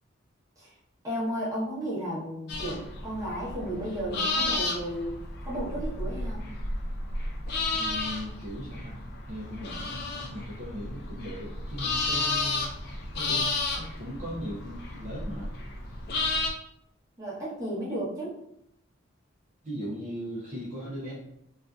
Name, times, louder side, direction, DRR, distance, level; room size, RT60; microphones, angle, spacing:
voice 1, 1.0-6.5 17.2-18.4, equal, 15° right, -8 dB, 0.8 m, -34 dB
sound 1, 2.5-16.5, left 3 dB, 50° left, 0.3 m, -32 dB
voice 2, 7.7-9.0 9.3-12.7 13.2-15.6 15.9-16.0 19.6-21.1, equal, 35° right, -7 dB, 0.5 m, -38 dB
2.5 x 2.3 x 2.3 m, 0.77 s
head